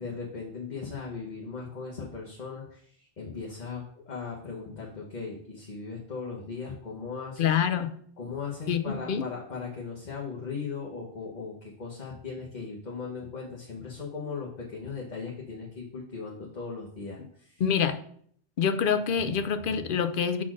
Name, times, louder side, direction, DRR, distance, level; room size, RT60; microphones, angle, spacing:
voice 1, 0.0-7.6 8.2-17.6 19.2-20.0, left 5 dB, 40° left, -2 dB, 1.1 m, -38 dB
voice 2, 7.4-7.9 8.7-8.8 9.1-9.2 17.6-18.0 18.6-20.4, left 7 dB, 55° left, 10 dB, 0.7 m, -26 dB
6.0 x 4.3 x 5.9 m, 0.63 s
omnidirectional pair, 1.2 m